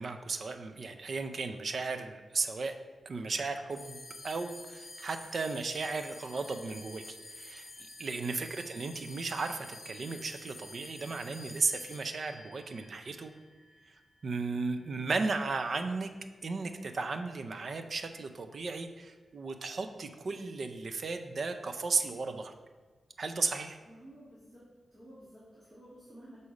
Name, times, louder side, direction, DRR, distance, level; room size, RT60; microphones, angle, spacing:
voice 1, 0.0-2.7 3.1-4.0 4.2-7.7 8.0-13.3 14.2-16.1 16.4-22.5 23.2-23.8, right 4 dB, 50° right, 7 dB, 0.5 m, -35 dB
sound 1, 3.7-14.4, left 2 dB, 25° left, 2.1 m, -49 dB
voice 2, 23.8-26.4, right 1 dB, 20° right, -9 dB, 1.6 m, -53 dB
6.4 x 4.1 x 4.8 m, 1.4 s
wide cardioid pair, 130°, 0 cm